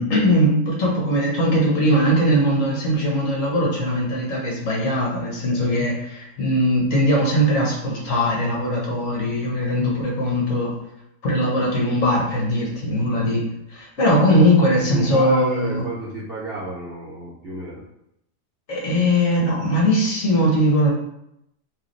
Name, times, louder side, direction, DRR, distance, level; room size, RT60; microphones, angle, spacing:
voice 1, 0.0-10.7 11.2-15.8 18.7-20.9, equal, 55° left, -3 dB, 1.4 m, -20 dB
voice 2, 14.8-17.8, right 2 dB, 45° right, -6 dB, 0.8 m, -32 dB
4.6 x 2.9 x 3.2 m, 0.79 s
omnidirectional pair, 1.7 m